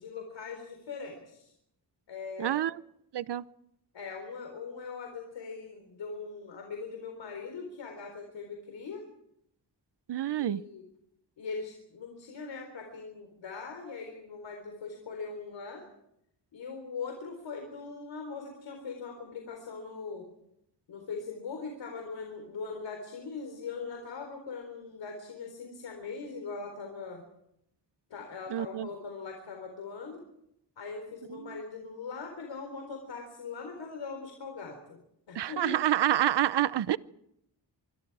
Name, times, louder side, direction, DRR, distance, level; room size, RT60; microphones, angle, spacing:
voice 1, 0.0-1.5 2.1-2.6 3.9-9.1 10.4-10.8 11.4-15.9 16.5-20.3 20.9-27.2 28.1-30.2 30.8-35.0 35.3-35.8, left 4 dB, 90° left, 4.2 m, -41 dB
voice 2, 2.4-2.7 3.1-3.4 10.1-10.6 28.5-28.9 35.4-37.0, right 12 dB, 70° right, 0.8 m, -27 dB
25.5 x 25.0 x 4.9 m
wide cardioid pair, 130°, 43 cm